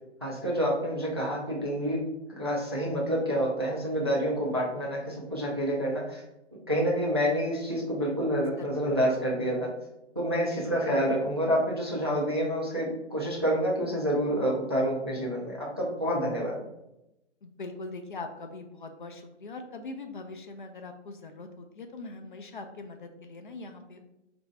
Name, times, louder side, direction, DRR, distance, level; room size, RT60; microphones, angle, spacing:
voice 1, 0.2-2.0 2.3-6.2 6.7-9.7 10.2-16.6, equal, 25° right, -3 dB, 0.3 m, -28 dB
voice 2, 17.4-24.0, left 3 dB, 45° left, 6 dB, 0.4 m, -42 dB
3.1 x 2.6 x 4.4 m, 0.89 s
hypercardioid pair, 160°, 36 cm